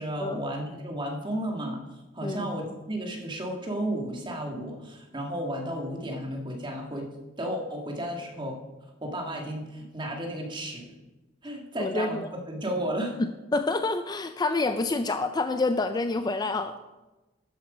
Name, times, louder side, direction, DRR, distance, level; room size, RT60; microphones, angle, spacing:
voice 1, 0.0-1.8 2.1-7.1 7.4-8.6 9.0-10.9 11.4-13.2, equal, 25° right, 1 dB, 2.0 m, -33 dB
voice 2, 11.8-12.3 13.2-16.7, left 3 dB, 20° left, 9 dB, 0.4 m, -28 dB
12.5 x 8.0 x 5.0 m, 1.1 s
head